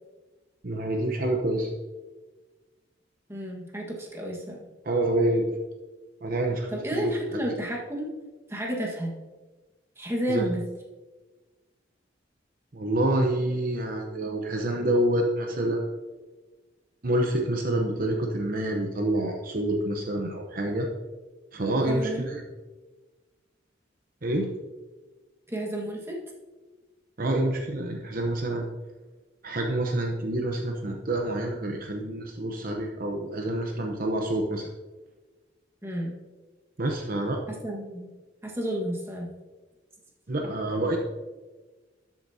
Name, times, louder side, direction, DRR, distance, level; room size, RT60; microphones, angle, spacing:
voice 1, 0.6-1.7 4.8-5.6 6.2-7.1 10.3-10.4 12.7-15.9 17.0-20.9 21.5-22.4 24.2-24.5 27.2-28.7 29.4-34.7 36.8-37.4 40.3-41.0, right 1 dB, 45° right, 2 dB, 0.9 m, -27 dB
voice 2, 3.3-4.7 6.7-8.1 8.5-9.1 10.0-10.6 21.7-22.2 25.5-26.2 35.8-36.1 37.6-38.1 38.4-39.3, equal, 15° right, -2 dB, 1.6 m, -31 dB
12.5 x 8.4 x 2.8 m, 1.2 s
head